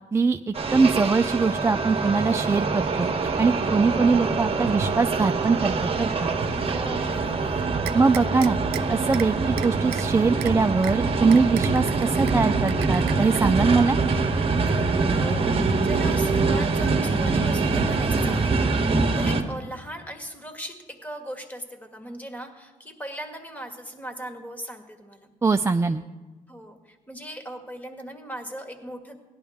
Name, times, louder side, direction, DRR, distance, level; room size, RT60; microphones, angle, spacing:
voice 1, 0.1-6.3 7.9-8.6 8.9-14.0 25.4-26.0, right 4 dB, 15° right, 6 dB, 0.4 m, -22 dB
sound 1, 0.5-19.4, right 4 dB, 35° right, 1.3 m, -24 dB
sound 2, 4.2-15.9, right 2 dB, 55° right, 1.2 m, -37 dB
voice 2, 6.6-7.7 14.7-25.3 26.5-29.2, right 1 dB, 10° left, 5 dB, 1.8 m, -38 dB
sound 3, 7.9-8.8 9.1-9.3 9.6-10.0 10.4-10.5 10.8-10.9 11.3-12.3 12.7-13.4, right 14 dB, 85° right, 0.5 m, -35 dB
17.0 x 11.0 x 3.6 m, 1.2 s
cardioid pair, 80°, 16 cm